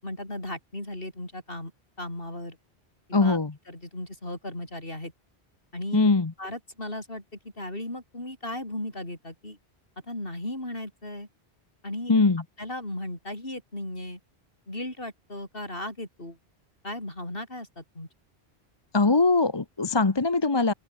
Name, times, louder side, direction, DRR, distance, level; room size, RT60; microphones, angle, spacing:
voice 1, 0.0-1.7 2.0-2.6 3.1-3.4 3.7-5.1 5.7-6.1 6.4-9.6 10.0-11.3 11.8-12.1 12.6-14.2 14.7-16.4 16.8-18.1, left 1 dB, 60° left, 7.1 m, -36 dB
voice 2, 3.1-3.5 5.9-6.3 12.1-12.4 18.9-20.7, left 3 dB, 25° left, 0.9 m, -21 dB
open air
omnidirectional pair, 1.1 m